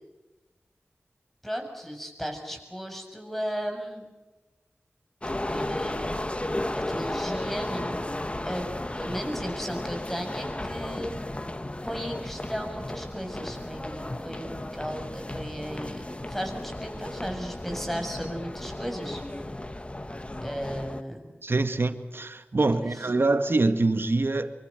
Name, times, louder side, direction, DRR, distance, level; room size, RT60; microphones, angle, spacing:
voice 1, 1.4-4.1 5.5-6.5 6.7-8.0 8.5-8.7 9.0-11.2 11.8-19.4 20.4-21.3 22.7-22.9, equal, 5° left, 4 dB, 7.1 m, -35 dB
sound 1, 5.2-21.0, left 1 dB, 25° left, 1.4 m, -34 dB
voice 2, 21.4-24.5, right 2 dB, 60° right, 9 dB, 2.0 m, -25 dB
26.5 x 24.0 x 6.8 m, 1.1 s
wide cardioid pair, 50°, 4 cm